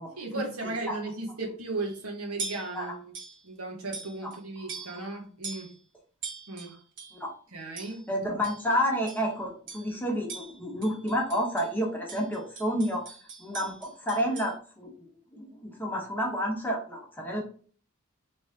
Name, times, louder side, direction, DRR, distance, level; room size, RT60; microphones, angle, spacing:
voice 1, 0.2-3.1 3.4-5.7 6.5-6.7 7.5-8.1, right 2 dB, 80° right, 1 dB, 1.4 m, -36 dB
sound 1, 1.8-2.0 2.4-2.8 3.1-3.4 3.9-4.4 4.7-5.1 5.4-5.7 6.2-7.2 7.8-8.1 8.4-8.7 9.1-9.3 9.7-9.9 10.3-11.7 12.1-14.5, right 4 dB, 55° right, 1.1 m, -42 dB
voice 2, 8.1-13.0 13.4-14.9 15.3-17.4, equal, 10° left, -2 dB, 1.2 m, -30 dB
3.8 x 3.3 x 3.6 m, 0.42 s
head